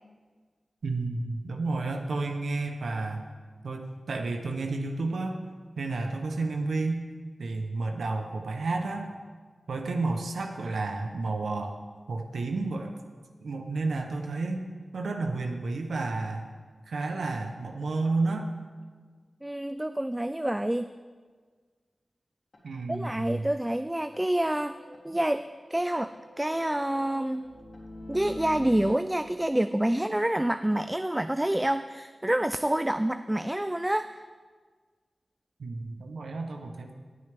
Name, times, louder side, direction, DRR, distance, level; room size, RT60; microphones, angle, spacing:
voice 1, 0.8-3.3 3.6-5.4 5.8-7.0 7.4-9.1 9.7-11.8 12.1-12.9 13.4-14.6 14.9-16.5 16.9-18.5 22.6-23.5 35.6-36.9, right 3 dB, 90° right, 4 dB, 0.8 m, -31 dB
voice 2, 19.4-20.9 22.9-24.8 25.0-27.5 28.1-34.2, right 1 dB, 15° right, 11 dB, 0.3 m, -28 dB
sound 1, 22.5-22.6 22.9-23.0 23.3-23.4 23.7-23.8 24.1-25.4 25.7-28.9, left 1 dB, 60° left, 3.4 m, -44 dB
19.5 x 6.6 x 3.5 m, 1.5 s
cardioid pair, 45°, 0 cm